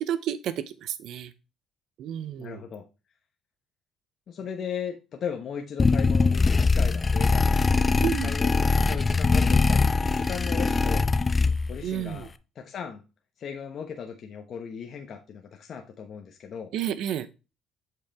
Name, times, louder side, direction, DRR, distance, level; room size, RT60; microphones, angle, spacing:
voice 1, 0.0-1.3 2.0-2.6 8.0-8.3 11.8-12.3 16.7-17.3, right 10 dB, 70° right, 14 dB, 0.7 m, -31 dB
voice 2, 2.4-2.8 4.3-7.7 8.2-11.1 11.7-13.0 13.4-16.7, left 7 dB, 55° left, 3 dB, 1.0 m, -37 dB
sound 1, 5.8-11.9, left 4 dB, 25° left, 0.4 m, -22 dB
7.8 x 4.8 x 3.4 m, 0.29 s
cardioid pair, 95°, 0 cm